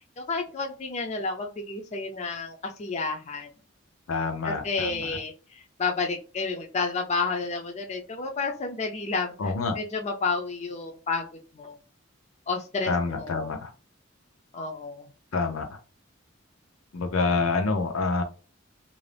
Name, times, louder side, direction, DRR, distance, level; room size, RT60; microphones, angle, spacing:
voice 1, 0.2-3.5 4.4-11.2 11.5-11.8 12.5-13.5 14.5-15.1, left 4 dB, 30° left, 0.4 m, -31 dB
voice 2, 4.1-5.2 9.4-9.8 12.9-13.7 15.3-15.8 16.9-18.2, left 3 dB, 85° left, 0.6 m, -27 dB
2.5 x 2.0 x 3.2 m
head